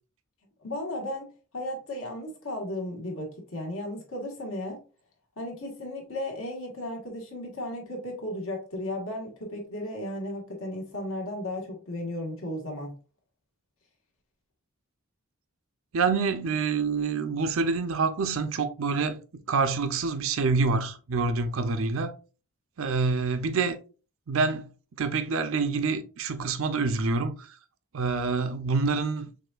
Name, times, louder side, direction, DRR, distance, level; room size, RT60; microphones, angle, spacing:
voice 1, 0.6-4.8 5.4-12.9, left 1 dB, 65° left, 1.6 m, -35 dB
voice 2, 15.9-19.2 19.5-22.1 22.8-23.8 24.3-24.7 25.0-27.5 27.9-29.3, right 4 dB, 60° right, 0.5 m, -26 dB
6.3 x 2.6 x 2.4 m
head